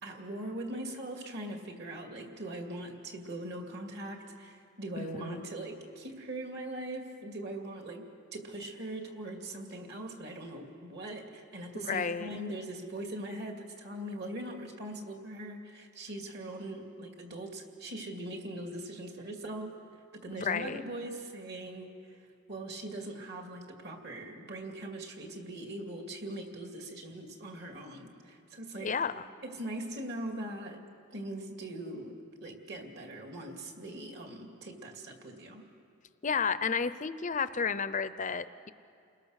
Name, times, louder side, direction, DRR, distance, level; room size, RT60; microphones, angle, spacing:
voice 1, 0.0-19.8 20.1-22.2 22.5-29.0 29.4-30.8 31.1-35.7, right 1 dB, 50° right, 3 dB, 2.5 m, -41 dB
voice 2, 4.9-5.5 11.7-12.4 20.3-20.8 28.8-29.1 36.2-38.7, left 5 dB, 35° left, 14 dB, 0.6 m, -32 dB
29.0 x 21.0 x 6.5 m, 2.4 s
head